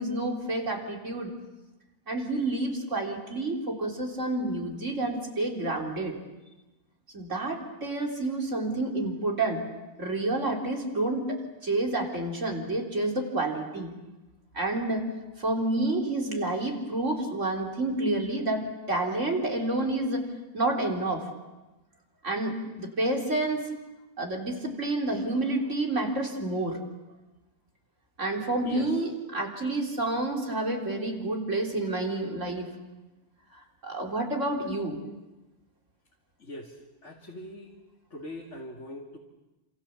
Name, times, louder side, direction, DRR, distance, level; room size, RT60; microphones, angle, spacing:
voice 1, 0.0-1.3 2.1-6.1 7.1-9.6 10.0-13.9 14.5-15.1 15.4-20.3 20.5-21.2 22.2-23.7 24.2-26.8 28.2-32.7 33.8-35.0, right 2 dB, 50° right, 1 dB, 4.0 m, -29 dB
voice 2, 36.4-36.7 37.0-37.7 38.1-39.2, left 1 dB, 50° left, -1 dB, 2.9 m, -41 dB
29.0 x 27.0 x 7.2 m, 1.1 s
omnidirectional pair, 1.6 m